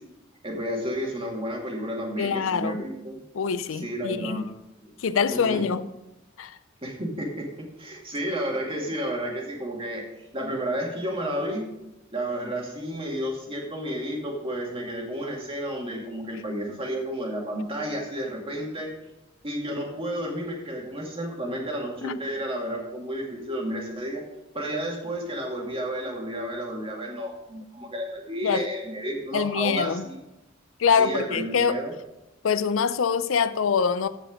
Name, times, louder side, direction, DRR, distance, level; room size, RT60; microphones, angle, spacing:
voice 1, 0.4-3.2 3.8-4.5 4.8-4.9 5.3-5.6 6.8-10.0 10.3-11.7 12.1-18.9 19.4-24.2 24.5-30.2 31.0-31.9, equal, 25° right, 2.3 m, -31 dB
voice 2, 2.2-2.9 3.3-4.4 5.0-5.9 6.4-6.6 22.0-22.2 28.4-28.7 29.3-30.1 30.8-31.8 32.4-34.1, left 6 dB, 75° left, 0.5 m, -24 dB
15.0 x 5.1 x 5.0 m
head